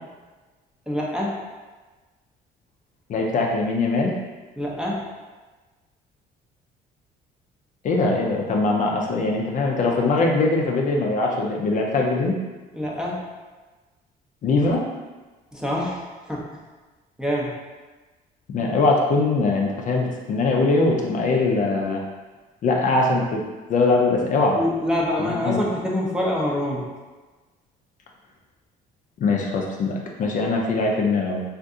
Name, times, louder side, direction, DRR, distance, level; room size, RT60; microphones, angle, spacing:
voice 1, 0.9-1.4 4.6-5.0 12.7-13.2 15.5-16.5 17.2-17.5 24.6-26.8, left 1 dB, 5° right, -4 dB, 0.6 m, -25 dB
voice 2, 3.1-4.2 7.8-12.4 14.4-14.9 18.5-22.0 22.6-23.4 23.7-24.6 25.2-25.6 29.2-31.4, left 3 dB, 50° left, 0 dB, 0.5 m, -21 dB
2.6 x 2.5 x 3.5 m, 1.3 s
cardioid pair, 110°, 17 cm